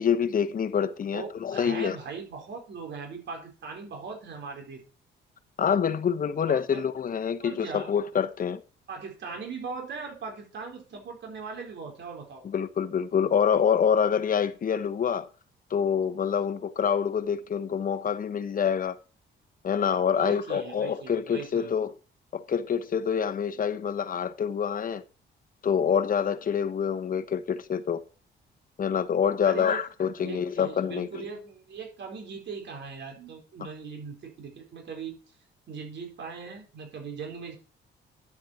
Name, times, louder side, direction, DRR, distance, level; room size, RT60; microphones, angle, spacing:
voice 1, 0.0-2.0 5.6-8.6 12.4-15.3 15.7-19.0 19.6-21.9 22.3-25.0 25.6-28.0 28.8-31.3, left 7 dB, 45° left, 1.1 m, -26 dB
voice 2, 1.1-4.8 6.5-6.8 7.4-7.9 8.9-12.4 20.1-21.7 29.4-29.8 30.2-35.2 35.7-37.5, right 5 dB, 65° right, 4.7 m, -39 dB
11.0 x 7.7 x 4.4 m
cardioid pair, 90°, 20 cm